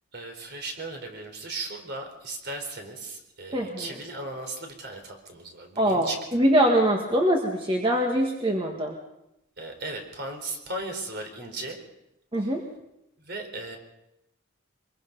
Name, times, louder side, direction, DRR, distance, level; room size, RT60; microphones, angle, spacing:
voice 1, 0.1-6.5 9.6-11.8 12.4-12.5 13.2-13.8, right 2 dB, 50° right, 4 dB, 4.2 m, -37 dB
voice 2, 3.5-3.9 5.8-8.9 12.3-12.6, right 1 dB, 25° right, 1 dB, 1.8 m, -23 dB
25.0 x 22.0 x 5.4 m, 0.86 s
head